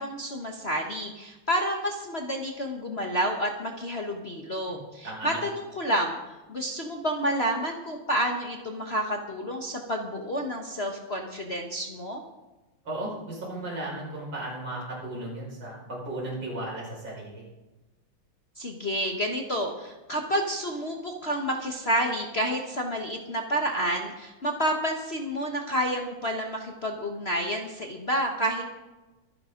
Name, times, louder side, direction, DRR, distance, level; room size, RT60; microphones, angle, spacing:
voice 1, 0.0-6.2 6.5-12.2 18.6-28.6, equal, 35° left, 2 dB, 1.3 m, -29 dB
voice 2, 5.0-5.4 12.8-17.4, right 1 dB, 60° right, -4 dB, 6.4 m, -35 dB
24.0 x 10.5 x 3.9 m, 1.1 s
omnidirectional pair, 2.3 m